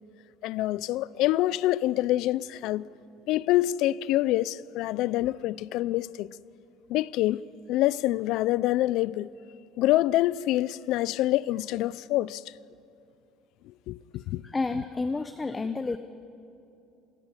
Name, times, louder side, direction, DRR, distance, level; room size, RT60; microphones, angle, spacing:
voice 1, 0.4-2.9 3.3-6.4 6.9-7.4 7.7-9.3 9.8-12.4 13.9-14.4, left 15 dB, 70° left, 0.6 m, -26 dB
voice 2, 14.4-16.0, left 3 dB, 20° left, 0.9 m, -30 dB
26.5 x 19.0 x 9.7 m
cardioid pair, 110°, 0 cm